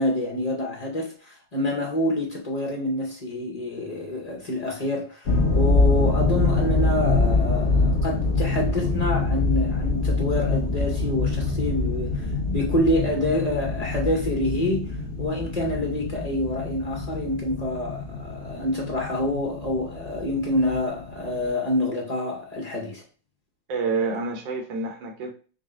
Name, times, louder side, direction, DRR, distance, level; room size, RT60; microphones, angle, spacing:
voice 1, 0.0-23.0, left 1 dB, 85° left, 0.3 m, -27 dB
sound 1, 5.3-21.5, left 3 dB, 45° left, 0.8 m, -25 dB
voice 2, 23.7-25.3, right 4 dB, 80° right, 1.6 m, -28 dB
5.2 x 2.1 x 3.7 m
omnidirectional pair, 2.1 m